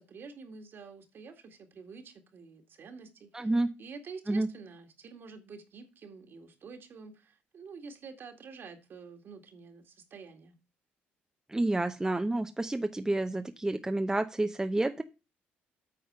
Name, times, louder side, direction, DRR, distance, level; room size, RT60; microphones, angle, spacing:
voice 1, 0.0-3.5 3.8-10.6, right 5 dB, 55° right, 5 dB, 2.1 m, -48 dB
voice 2, 3.3-3.7 4.3-4.5 11.5-15.0, right 2 dB, 15° right, 7 dB, 0.8 m, -29 dB
8.8 x 4.2 x 6.7 m, 0.28 s
supercardioid pair, 70°, 4 cm